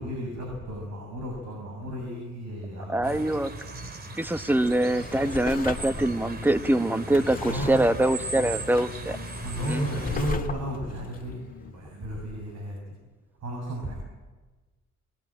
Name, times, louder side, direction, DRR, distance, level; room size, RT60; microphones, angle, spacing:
voice 1, 0.0-3.3 7.5-7.8 9.4-11.4 11.6-12.8 13.4-14.0, equal, 65° right, 1 dB, 7.3 m, -33 dB
voice 2, 2.9-3.5 4.2-9.2 9.7-9.8, right 1 dB, 5° right, 11 dB, 1.2 m, -24 dB
sound 1, 3.0-10.3, right 2 dB, 30° right, 2.8 m, -38 dB
Drawer open or close, 4.6-12.3 12.7-12.8, left 4 dB, 30° left, 2.0 m, -38 dB
sound 2, 4.7-11.7, left 6 dB, 50° left, 2.0 m, -45 dB
23.5 x 20.5 x 8.9 m, 1.3 s
cardioid pair, 90°, 30 cm